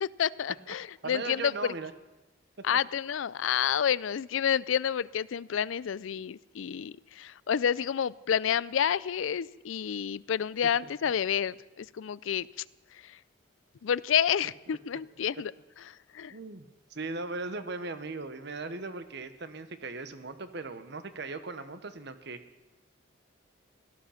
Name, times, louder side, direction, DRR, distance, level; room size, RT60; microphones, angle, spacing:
voice 1, 0.0-1.5 2.6-12.5 13.0-13.2 13.8-15.5 16.1-16.3, left 8 dB, 80° left, 21 dB, 0.4 m, -29 dB
voice 2, 1.0-1.9 10.8-10.9 16.3-22.4, right 3 dB, 60° right, 10 dB, 1.1 m, -38 dB
17.5 x 13.0 x 5.8 m, 1.1 s
head